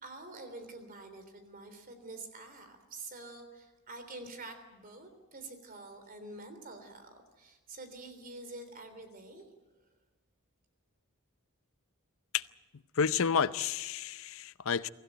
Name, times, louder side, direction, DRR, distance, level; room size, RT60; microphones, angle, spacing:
voice 1, 0.0-9.5, right 2 dB, 40° right, 3.4 m, -47 dB
voice 2, 13.0-14.9, left 6 dB, 65° left, 0.6 m, -30 dB
24.0 x 15.5 x 9.2 m
head